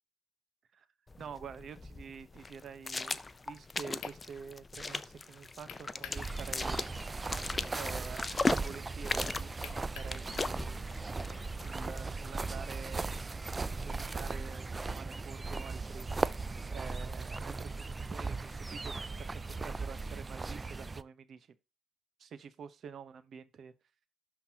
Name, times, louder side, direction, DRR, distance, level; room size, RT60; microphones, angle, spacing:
sound 1, 1.1-12.1, left 3 dB, 25° left, 0.5 m, -38 dB
voice 1, 1.2-6.9 7.7-10.9 11.2-16.1 16.7-21.5 22.2-23.7, right 6 dB, 60° right, 0.9 m, -48 dB
sound 2, 4.0-4.2 5.7-6.3 6.6-6.7 9.6-10.6, left 9 dB, 80° left, 0.9 m, -46 dB
sound 3, 6.1-21.0, right 3 dB, 25° right, 0.4 m, -37 dB
12.0 x 4.0 x 2.8 m
cardioid pair, 90°, 0 cm